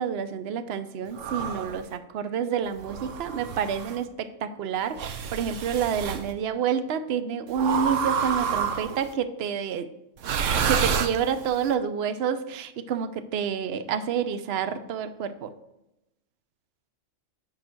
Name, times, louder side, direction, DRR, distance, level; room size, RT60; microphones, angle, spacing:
voice 1, 0.0-9.9 10.7-15.5, right 7 dB, 60° right, 11 dB, 0.9 m, -28 dB
sound 1, 1.2-1.8 2.8-4.0 5.0-6.2 7.6-9.1 10.2-11.6, right 6 dB, 85° right, 1.1 m, -28 dB
10.5 x 3.9 x 5.9 m, 0.90 s
omnidirectional pair, 1.3 m